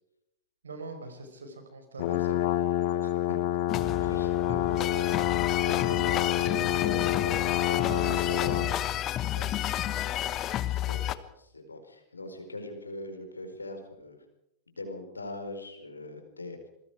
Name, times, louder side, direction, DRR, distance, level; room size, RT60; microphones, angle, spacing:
voice 1, 0.6-2.7 3.0-3.1 3.8-3.9 4.5-4.6 5.0-5.2 7.9-8.8 9.3-10.0, right 2 dB, 70° right, 7 dB, 5.3 m, -42 dB
sound 1, 2.0-8.8, left 12 dB, 50° left, 1.6 m, -28 dB
sound 2, 3.7-11.1, left 12 dB, 35° left, 1.2 m, -31 dB
voice 2, 4.0-4.3 4.9-5.0 5.6-8.6 10.5-14.2 14.7-16.7, left 2 dB, 80° left, 6 dB, 4.8 m, -41 dB
27.5 x 21.5 x 4.9 m, 0.83 s
figure-of-eight pair, 90°, 0 cm